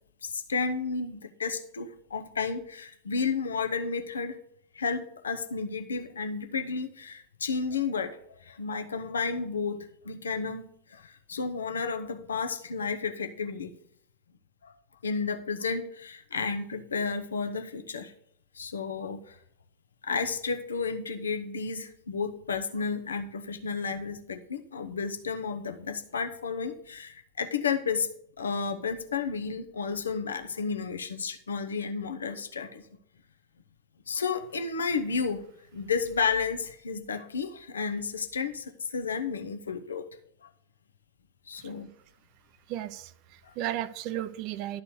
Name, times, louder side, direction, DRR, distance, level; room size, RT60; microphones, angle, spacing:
voice 1, 0.2-4.4 4.7-13.7 14.6-14.7 15.0-18.1 18.5-19.4 20.0-28.1 28.4-32.8 34.1-35.5 35.7-40.1 40.4-40.5 41.5-41.9 43.4-43.5, left 5 dB, 70° left, 7 dB, 0.8 m, -32 dB
voice 2, 42.7-44.8, right 13 dB, 45° right, 14 dB, 0.5 m, -35 dB
12.0 x 4.2 x 6.9 m, 0.68 s
figure-of-eight pair, 90°, 0 cm